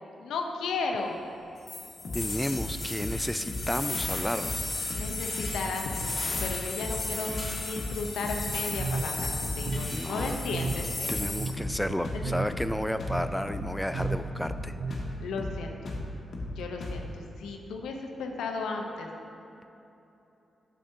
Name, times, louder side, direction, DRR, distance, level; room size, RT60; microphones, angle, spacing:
voice 1, 0.2-1.2 4.9-11.1 12.1-12.3 15.2-15.9 16.6-17.1 17.4-19.1, left 4 dB, 80° left, 2 dB, 0.6 m, -35 dB
sound 1, 1.7-11.5, left 2 dB, 45° left, 1.6 m, -35 dB
sound 2, 2.0-2.3 2.5-2.7 3.0-3.2 3.5-3.7 3.9-4.2 4.4-4.6 4.9-5.1 5.4-5.6 5.9-6.1 6.3-6.6 6.8-7.0 7.3-7.5 7.8-8.0 8.2-8.5 8.7-8.9 9.2-9.9 10.1-10.4 10.6-10.8 11.1-11.3 11.6-11.8 12.0-12.3 12.5-12.7 13.0-13.2 13.5-13.7 13.9-14.2 14.4-14.6 14.9-15.1 15.4-15.6 15.9-16.1 16.3-16.5 16.8-17.0, left 2 dB, 60° left, 1.1 m, -35 dB
voice 2, 2.1-4.9 9.9-10.4 11.1-15.0, equal, 5° left, 9 dB, 0.3 m, -32 dB
sound 3, 8.5-15.3, right 3 dB, 85° right, 0.4 m, -36 dB
8.4 x 6.6 x 2.7 m, 3.0 s
supercardioid pair, 40°, 0 cm